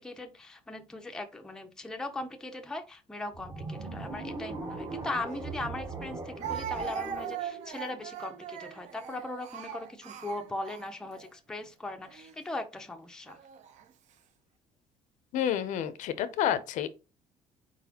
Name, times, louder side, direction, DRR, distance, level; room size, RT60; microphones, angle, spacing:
voice 1, 0.0-13.4, left 2 dB, 5° left, 0.5 m, -39 dB
sound 1, 3.3-8.6, right 3 dB, 20° right, 0.7 m, -40 dB
Speech, 5.3-5.4 6.4-11.3 12.1-12.3 13.3-13.8, right 9 dB, 55° right, 0.5 m, -40 dB
voice 2, 15.3-16.9, left 10 dB, 60° left, 0.5 m, -29 dB
4.4 x 4.1 x 2.8 m
cardioid pair, 160°, 14 cm